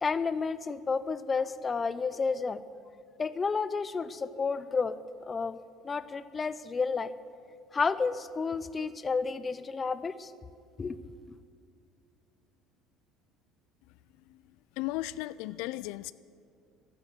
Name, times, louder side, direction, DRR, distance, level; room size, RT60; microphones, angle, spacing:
voice 1, 0.0-2.6 3.2-5.0 5.2-5.6 5.8-7.1 7.7-10.3 10.8-11.0 11.3-11.4, left 4 dB, 25° left, 14 dB, 0.6 m, -31 dB
voice 2, 14.8-16.1, left 17 dB, 75° left, 16 dB, 0.3 m, -35 dB
12.0 x 11.5 x 9.6 m, 2.3 s
cardioid pair, 115°, 0 cm